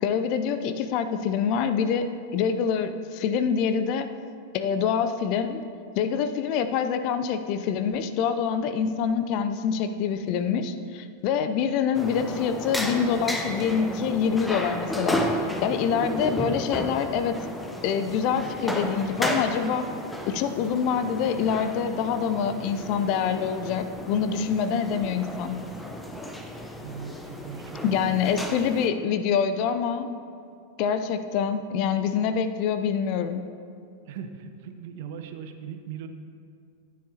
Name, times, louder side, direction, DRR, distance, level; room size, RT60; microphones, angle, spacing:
voice 1, 0.0-4.1 4.5-5.6 6.0-15.3 15.6-17.4 17.8-19.9 20.3-25.6 27.8-30.1 30.8-33.5, left 7 dB, 45° left, 10 dB, 0.5 m, -26 dB
sound 1, 11.9-28.9, equal, 5° left, 0.8 m, -33 dB
voice 2, 26.8-28.4 34.1-36.1, right 7 dB, 50° right, 7 dB, 0.8 m, -39 dB
14.5 x 9.6 x 2.9 m, 2.4 s
figure-of-eight pair, 90°, 0 cm